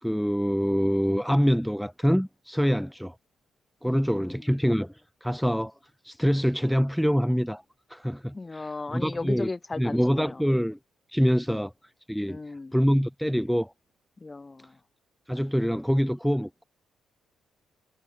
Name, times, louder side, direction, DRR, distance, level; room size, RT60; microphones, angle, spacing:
voice 1, 0.0-3.1 3.8-5.7 6.0-7.6 7.9-9.5 9.8-10.8 11.1-11.7 12.1-13.7 15.3-16.6, equal, ahead, 1.4 m, -25 dB
voice 2, 3.9-4.4 8.3-10.4 12.3-12.8 14.2-14.8, left 3 dB, 20° left, 2.9 m, -36 dB
cardioid pair, 90°, 0 cm